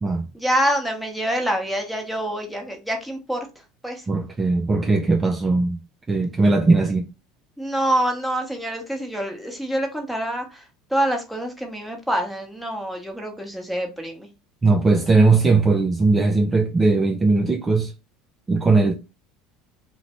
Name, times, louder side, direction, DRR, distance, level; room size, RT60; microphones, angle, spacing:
voice 1, 0.3-3.5 3.8-4.1 7.6-14.3, right 1 dB, ahead, 0.9 m, -26 dB
voice 2, 4.1-5.8 6.1-7.0 14.6-17.9 18.5-18.9, right 3 dB, 20° right, 0.3 m, -19 dB
2.5 x 2.0 x 3.0 m
supercardioid pair, 95°, 0 cm